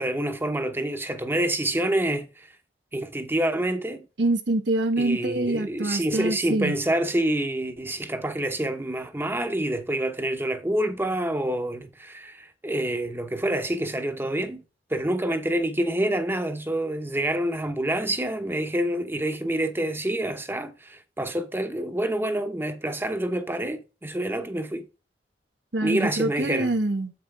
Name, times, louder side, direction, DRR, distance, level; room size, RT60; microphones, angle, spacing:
voice 1, 0.0-2.5 2.9-4.0 5.0-14.6 14.9-24.9 25.8-26.7, right 1 dB, 15° right, 0.8 m, -27 dB
voice 2, 4.2-6.7 25.7-27.1, right 2 dB, 90° right, 1.4 m, -25 dB
7.8 x 5.6 x 3.6 m
head